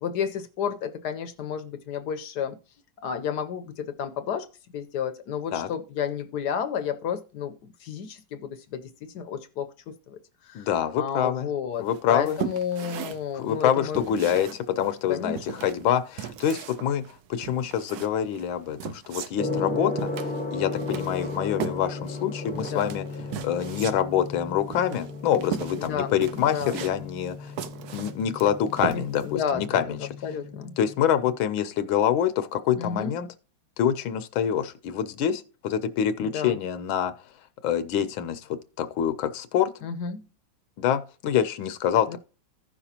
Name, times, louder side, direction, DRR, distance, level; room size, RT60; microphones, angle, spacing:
voice 1, 0.0-2.6 3.0-4.5 4.7-10.2 10.4-10.7 11.0-14.4 15.1-15.5 19.5-19.7 22.5-22.9 25.8-26.9 28.9-29.9 30.2-30.7 32.8-33.1 36.2-36.6 39.8-40.2 42.1-42.2, left 7 dB, 65° left, 1.2 m, -32 dB
voice 2, 10.5-11.5 11.8-12.4 13.3-17.0 17.3-20.1 20.5-23.0 23.4-27.5 27.9-30.0 30.8-33.3 33.8-37.1 37.6-38.4 38.8-39.7 40.8-42.2, left 9 dB, 80° left, 1.5 m, -26 dB
sound 1, 11.9-29.4, right 9 dB, 65° right, 1.0 m, -38 dB
Gong, 19.4-31.3, left 3 dB, 5° left, 1.1 m, -35 dB
15.5 x 5.9 x 2.8 m
omnidirectional pair, 2.1 m